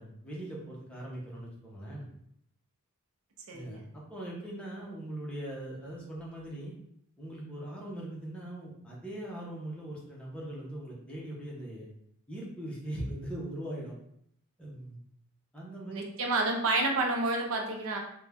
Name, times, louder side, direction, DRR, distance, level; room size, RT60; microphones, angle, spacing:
voice 1, 0.0-2.1 3.5-6.7 7.2-11.9 12.3-13.9 14.6-15.0 15.5-16.0, right 1 dB, 5° left, -5 dB, 0.7 m, -40 dB
voice 2, 3.5-3.8 15.9-18.0, right 2 dB, 65° right, 1 dB, 0.6 m, -29 dB
2.6 x 2.2 x 3.3 m, 0.73 s
head